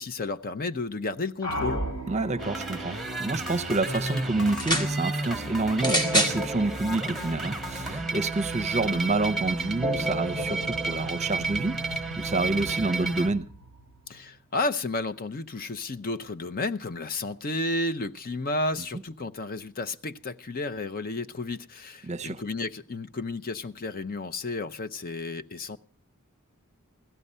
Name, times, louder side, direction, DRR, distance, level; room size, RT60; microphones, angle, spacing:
voice 1, 0.0-1.8 14.1-25.8, left 2 dB, 40° left, 0.7 m, -32 dB
sound 1, 1.4-14.3, right 1 dB, 90° left, 6.2 m, -40 dB
voice 2, 2.1-13.5 22.0-22.4, right 3 dB, 30° right, 0.7 m, -28 dB
sound 2, 2.4-13.3, right 2 dB, ahead, 1.6 m, -31 dB
sound 3, 4.5-4.9 5.8-6.4 7.3-7.4, equal, 20° left, 2.1 m, -25 dB
16.5 x 13.5 x 5.5 m
head